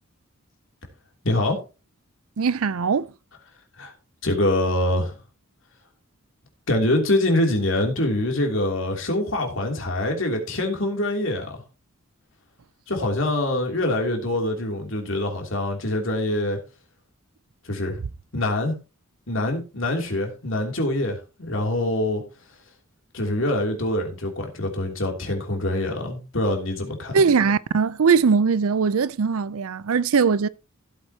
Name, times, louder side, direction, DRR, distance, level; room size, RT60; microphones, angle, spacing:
voice 1, 1.2-1.6 3.8-3.9 4.2-5.2 6.7-11.6 12.9-16.6 17.6-18.0 18.3-18.7 19.3-22.2 23.1-27.2, left 1 dB, 60° left, 2.9 m, -24 dB
voice 2, 2.4-3.1 27.1-30.5, right 5 dB, 75° right, 0.5 m, -20 dB
16.0 x 8.0 x 2.9 m
head